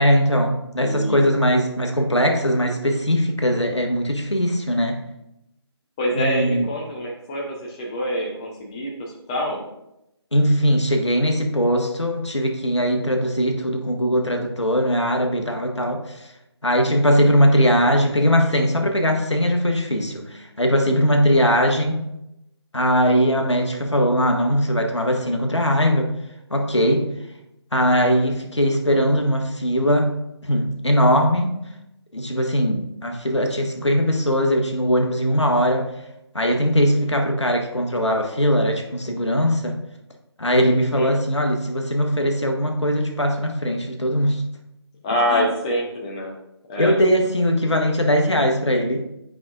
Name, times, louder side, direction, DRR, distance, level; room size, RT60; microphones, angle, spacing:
voice 1, 0.0-5.0 6.1-6.7 10.3-16.3 16.6-22.0 22.7-26.1 26.5-27.1 27.7-30.2 30.4-31.6 32.1-35.9 36.3-39.8 40.4-44.4 45.3-45.5 46.8-49.1, equal, 80° left, 4 dB, 1.2 m, -20 dB
voice 2, 0.8-1.2 6.0-9.7 40.9-41.1 45.0-46.3 46.7-47.0, equal, 15° left, -2 dB, 0.7 m, -26 dB
10.5 x 5.0 x 2.4 m, 0.86 s
figure-of-eight pair, 150°, 14 cm